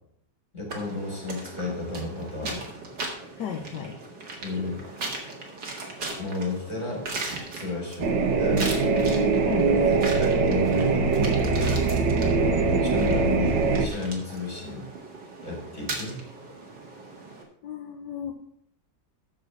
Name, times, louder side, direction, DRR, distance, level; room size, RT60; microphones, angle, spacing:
voice 1, 0.5-2.7 4.4-4.8 6.2-7.1 7.5-8.9 9.7-11.6 12.7-14.9 15.4-16.2, left 2 dB, 40° left, -2 dB, 4.7 m, -32 dB
sound 1, 0.7-17.4, right 3 dB, 75° right, 2.6 m, -38 dB
voice 2, 3.4-3.9 9.4-10.1 17.6-18.3, left 7 dB, 75° left, 0 dB, 1.6 m, -34 dB
sound 2, 8.0-13.9, right 4 dB, 90° right, 1.7 m, -22 dB
9.6 x 6.7 x 6.5 m, 0.68 s
omnidirectional pair, 1.9 m